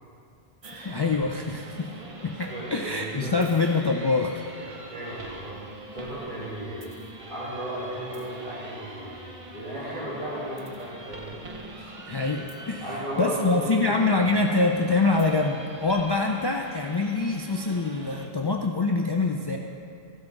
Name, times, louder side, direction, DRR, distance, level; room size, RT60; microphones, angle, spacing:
sound 1, 0.6-18.3, right 1 dB, 35° right, 0.8 m, -43 dB
voice 1, 0.7-1.9 2.2-4.4 11.8-12.8 13.2-19.6, left 3 dB, 40° left, 1 dB, 0.4 m, -25 dB
voice 2, 2.4-3.4 4.9-5.6 5.9-6.8 7.3-9.3 9.5-11.4 12.8-14.3, right 1 dB, 55° right, -13 dB, 2.8 m, -35 dB
15.0 x 5.9 x 3.9 m, 2.4 s
omnidirectional pair, 1.0 m